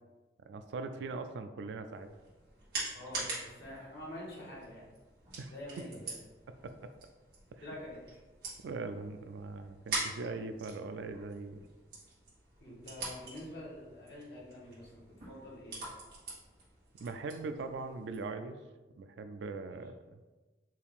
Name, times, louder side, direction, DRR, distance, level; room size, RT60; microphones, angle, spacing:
voice 1, 0.5-2.1 5.4-5.9 6.6-6.9 7.6-7.7 8.6-11.6 17.0-18.6 18.9-20.2, right 3 dB, 80° right, 9 dB, 0.3 m, -41 dB
sound 1, 1.9-18.3, right 3 dB, 55° right, 1.5 m, -45 dB
voice 2, 2.9-4.8 5.5-6.1 7.6-8.0 12.6-15.8 19.7-19.8, left 1 dB, 65° left, -6 dB, 1.5 m, -46 dB
4.4 x 2.5 x 3.5 m, 1.2 s
head